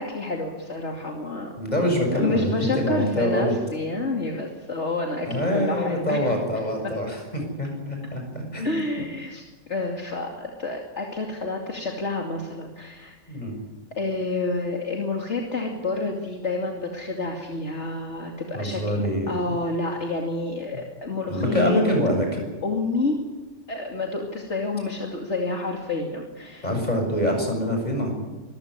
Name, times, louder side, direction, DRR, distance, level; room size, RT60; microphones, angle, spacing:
voice 1, 0.0-1.5 2.1-6.2 8.6-13.4 14.0-21.8 22.6-23.2 23.7-26.7, left 3 dB, 65° left, 1 dB, 2.9 m, -29 dB
voice 2, 1.6-3.5 5.3-8.7 13.3-13.5 18.5-19.3 21.3-22.4 26.6-28.1, equal, 35° left, 2 dB, 7.3 m, -25 dB
25.0 x 15.0 x 9.7 m, 1.2 s
omnidirectional pair, 1.3 m